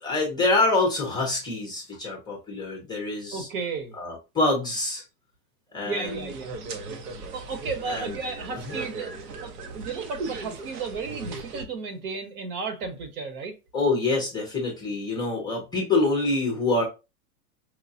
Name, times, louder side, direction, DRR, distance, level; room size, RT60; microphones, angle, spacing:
voice 1, 0.0-3.5 4.0-5.0 5.7-6.3 7.9-8.2 8.6-8.8 13.7-16.8, left 2 dB, 10° left, 0.5 m, -26 dB
voice 2, 3.3-4.0 5.8-6.6 6.9-7.0 7.3-9.1 9.4-13.6, right 4 dB, 65° right, 1.2 m, -33 dB
sound 1, 6.0-11.7, right 3 dB, 90° right, 1.0 m, -37 dB
4.7 x 2.2 x 2.7 m
supercardioid pair, 150°, 46 cm